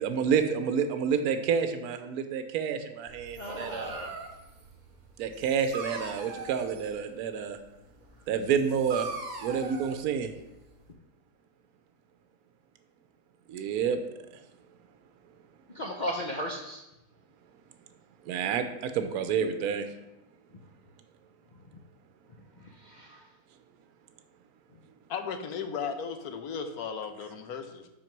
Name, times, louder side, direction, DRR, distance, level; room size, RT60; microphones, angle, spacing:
voice 1, 0.0-4.0 5.2-7.6 8.3-9.1 9.4-10.3 13.5-14.0 14.3-14.4 18.2-19.9, right 7 dB, 75° right, 8 dB, 1.1 m, -29 dB
Dog, 3.1-10.9, right 4 dB, 55° right, 1.3 m, -42 dB
voice 2, 3.4-4.1 15.7-16.8 22.8-23.2, equal, 55° left, 0 dB, 0.5 m, -35 dB
voice 3, 25.1-27.9, left 6 dB, 70° left, 7 dB, 1.2 m, -35 dB
5.9 x 4.4 x 5.8 m, 0.95 s
omnidirectional pair, 1.7 m